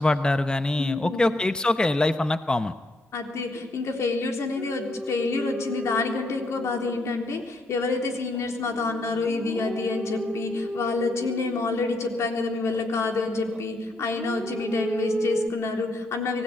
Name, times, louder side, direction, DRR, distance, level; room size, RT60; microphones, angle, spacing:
voice 1, 0.0-2.7, left 2 dB, 15° left, 10 dB, 0.8 m, -23 dB
voice 2, 0.8-1.2 3.1-16.4, left 3 dB, 70° left, 3 dB, 3.7 m, -28 dB
sound 1, 4.6-7.5 8.0-12.2 12.7-13.6 13.9-15.5, right 2 dB, 15° right, 1.3 m, -34 dB
25.0 x 16.5 x 8.7 m, 1.4 s
cardioid pair, 75°, 5 cm